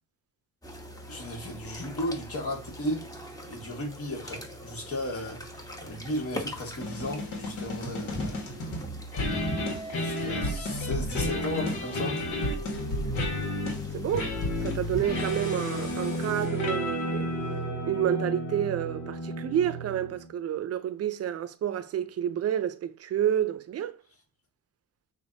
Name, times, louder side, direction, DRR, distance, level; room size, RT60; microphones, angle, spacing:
sound 1, 0.6-16.5, equal, 10° left, 1.1 m, -43 dB
voice 1, 1.1-8.4 9.9-12.2, left 1 dB, 50° left, 2.0 m, -35 dB
sound 2, 6.8-20.3, left 1 dB, 75° left, 1.6 m, -32 dB
voice 2, 13.9-14.3 14.6-17.4 17.8-24.0, right 10 dB, 55° right, 0.6 m, -29 dB
6.1 x 2.7 x 2.7 m
cardioid pair, 90°, 30 cm